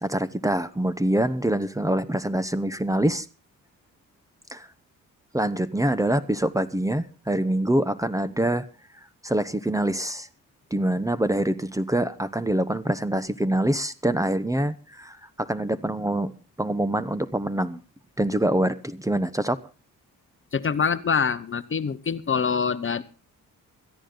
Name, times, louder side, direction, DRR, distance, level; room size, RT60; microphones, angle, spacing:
voice 1, 0.0-3.3 4.5-4.7 5.3-8.7 9.2-10.3 10.7-16.3 16.6-17.8 18.2-19.6, right 1 dB, 10° right, 14 dB, 0.9 m, -25 dB
voice 2, 20.5-23.0, left 6 dB, 40° left, 13 dB, 0.9 m, -25 dB
17.0 x 14.0 x 3.9 m, 0.33 s
cardioid pair, 90°, 33 cm